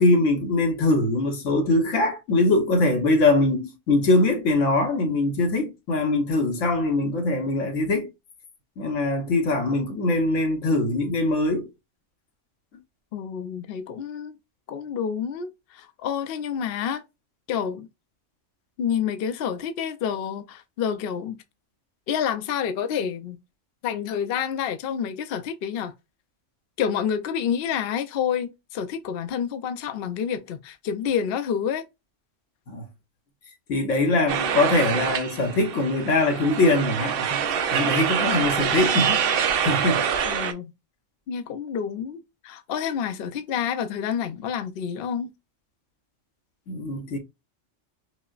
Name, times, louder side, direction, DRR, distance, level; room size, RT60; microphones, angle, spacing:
voice 1, 0.0-8.1 8.8-11.7 32.7-32.8 33.7-37.4 37.7-40.1 46.7-47.2, left 2 dB, 80° left, 1.3 m, -22 dB
voice 2, 13.1-14.4 14.7-17.0 17.5-17.9 18.8-21.4 22.1-23.4 23.8-25.9 26.8-31.8 40.2-40.7 41.3-45.3, left 8 dB, 65° left, 0.7 m, -28 dB
sound 1, 34.3-40.5, right 7 dB, 60° right, 0.7 m, -25 dB
5.3 x 2.0 x 2.3 m
omnidirectional pair, 1.3 m